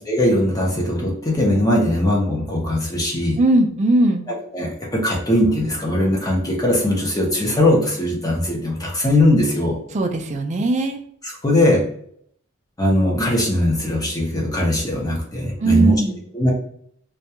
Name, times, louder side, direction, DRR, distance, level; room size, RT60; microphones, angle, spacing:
voice 1, 0.1-3.4 4.3-9.8 11.2-11.8 12.8-15.9 16.3-16.5, left 1 dB, 15° left, -3 dB, 0.6 m, -20 dB
voice 2, 3.4-4.2 9.9-11.0 15.6-16.2, right 2 dB, 35° right, 5 dB, 0.3 m, -18 dB
2.3 x 2.2 x 2.8 m, 0.64 s
head